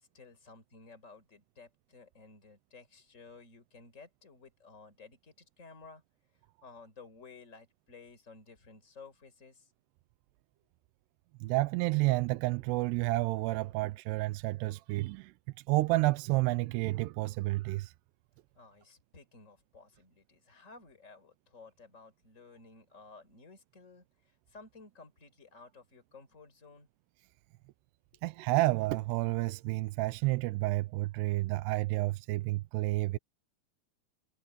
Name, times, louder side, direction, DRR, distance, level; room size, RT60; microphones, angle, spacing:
voice 1, 0.0-6.0 6.6-9.7 18.5-26.9 28.1-28.2, left 4 dB, 20° left, 4.5 m, -55 dB
voice 2, 11.4-15.3 15.7-17.9 28.2-33.2, right 20 dB, 90° right, 2.7 m, -30 dB
omnidirectional pair, 4.8 m